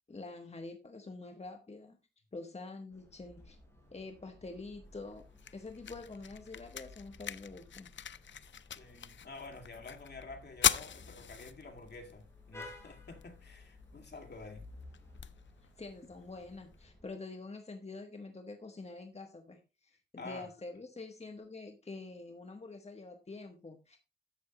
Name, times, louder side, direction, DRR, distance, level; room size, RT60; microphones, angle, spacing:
voice 1, 0.1-2.0 2.3-3.6 3.9-5.3 5.5-7.9 15.8-24.0, left 3 dB, 35° left, 1.3 m, -46 dB
sound 1, 2.9-17.1, left 2 dB, 15° left, 4.6 m, -55 dB
sound 2, 4.8-16.8, left 8 dB, 80° left, 0.5 m, -40 dB
voice 2, 8.8-14.6 20.2-20.5, left 3 dB, 65° left, 2.2 m, -49 dB
11.5 x 7.6 x 2.9 m
wide cardioid pair, 90°, 19 cm